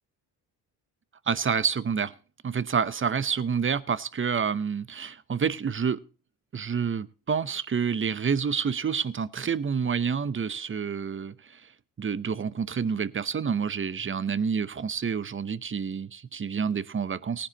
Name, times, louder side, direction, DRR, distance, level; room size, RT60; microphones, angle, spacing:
voice 1, 1.3-2.1 2.4-6.0 6.5-11.7 12.0-17.5, right 6 dB, 25° right, 17 dB, 0.7 m, -28 dB
18.5 x 10.0 x 2.9 m, 0.37 s
hypercardioid pair, 55°, 49 cm